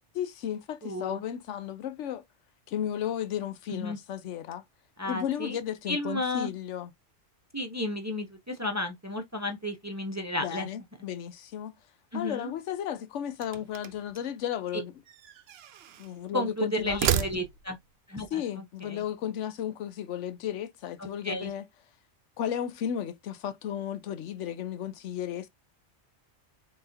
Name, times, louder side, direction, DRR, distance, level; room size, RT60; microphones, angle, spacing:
voice 1, 0.1-2.2 2.7-4.6 5.0-6.9 10.4-11.7 12.1-14.9 16.0-17.3 18.3-21.7 22.4-25.5, left 10 dB, 85° left, 1.0 m, -34 dB
voice 2, 0.8-1.2 3.7-4.0 5.0-5.6 5.9-6.5 7.5-10.7 12.1-12.5 14.7-14.8 16.3-17.8 18.1-19.0 21.2-21.5, left 1 dB, 20° right, 0.5 m, -33 dB
sound 1, 13.3-14.2 15.1-16.1 16.8-17.8, right 10 dB, 65° right, 0.8 m, -32 dB
4.1 x 3.8 x 2.7 m
omnidirectional pair, 1.2 m